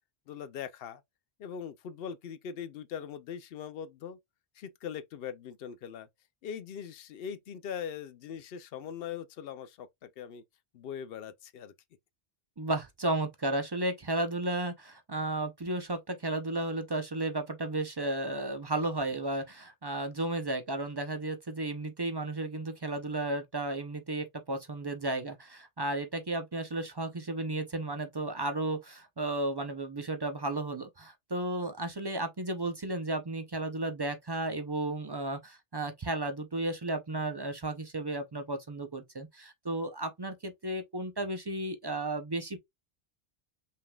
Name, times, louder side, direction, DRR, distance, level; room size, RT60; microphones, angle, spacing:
voice 1, 0.3-1.0 1.4-4.2 4.6-6.1 6.4-10.4 10.7-11.7, left 8 dB, 70° left, 0.7 m, -41 dB
voice 2, 12.6-42.6, right 2 dB, 35° right, 0.4 m, -33 dB
5.5 x 3.5 x 2.2 m
omnidirectional pair, 1.1 m